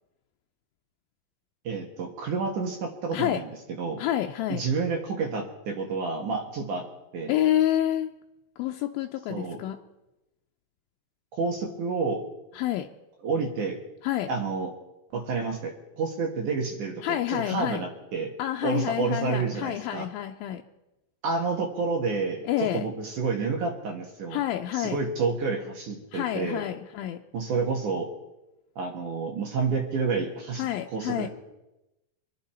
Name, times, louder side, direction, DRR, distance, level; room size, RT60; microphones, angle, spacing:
voice 1, 1.6-3.5 3.8-4.0 4.5-6.9 7.1-7.3 9.3-9.6 11.3-12.2 13.2-13.8 14.3-14.7 15.1-18.3 18.6-20.1 21.2-24.4 24.7-26.6 27.3-28.1 28.8-30.7 30.9-31.3, right 4 dB, 65° right, 2 dB, 2.7 m, -29 dB
voice 2, 3.1-3.4 4.0-4.6 7.3-8.1 8.6-9.8 12.5-12.9 14.0-14.3 17.0-17.8 18.4-20.6 22.4-22.9 24.3-25.0 26.1-27.2 30.6-31.3, left 12 dB, 85° left, 4 dB, 2.4 m, -28 dB
24.5 x 10.5 x 4.3 m, 0.96 s
omnidirectional pair, 4.2 m